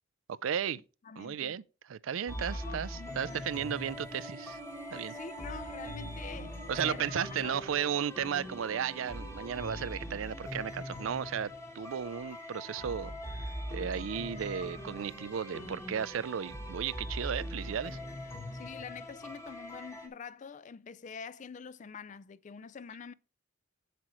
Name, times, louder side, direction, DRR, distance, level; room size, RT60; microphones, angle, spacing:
voice 1, 0.4-0.8 1.2-1.6 1.9-4.6 4.9-5.2 6.7-18.0, right 8 dB, 85° right, 0.4 m, -34 dB
voice 2, 1.0-1.6 2.4-3.9 5.1-7.6 18.5-23.1, left 6 dB, 40° left, 0.4 m, -46 dB
sound 1, 2.3-20.1, left 1 dB, 15° left, 1.3 m, -42 dB
sound 2, 3.1-11.5 11.8-12.0, right 2 dB, 20° right, 1.0 m, -51 dB
7.6 x 7.5 x 3.0 m
head